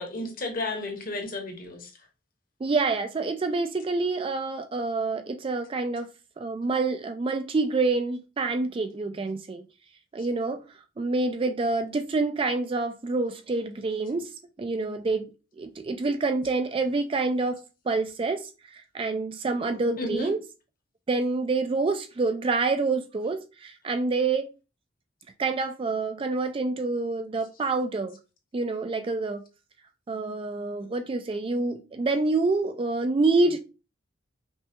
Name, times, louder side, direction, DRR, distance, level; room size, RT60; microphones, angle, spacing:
voice 1, 0.0-1.9 20.0-20.3, left 2 dB, 45° left, 1.0 m, -32 dB
voice 2, 2.6-6.1 6.4-9.7 10.1-10.6 11.0-14.3 14.6-15.3 15.6-17.6 17.9-20.4 21.1-24.5 25.4-28.2 28.5-29.4 30.1-33.6, right 3 dB, 25° right, 0.3 m, -27 dB
5.3 x 2.3 x 2.8 m
head